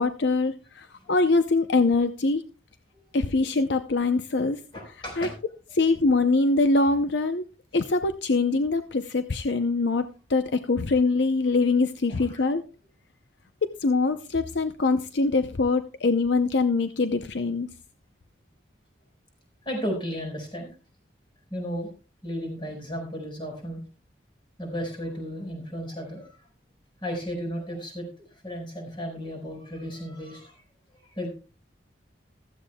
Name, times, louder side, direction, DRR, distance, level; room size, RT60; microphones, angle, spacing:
voice 1, 0.0-2.4 3.1-4.6 5.2-5.3 5.7-7.4 7.7-12.6 13.6-17.7, left 3 dB, 65° left, 9 dB, 0.6 m, -23 dB
voice 2, 4.7-5.3 12.1-12.4 19.6-20.7 21.5-21.9 22.2-23.8 24.6-26.4 27.0-30.6 30.9-31.3, equal, 25° left, 2 dB, 4.7 m, -34 dB
15.5 x 13.5 x 2.2 m, 0.32 s
head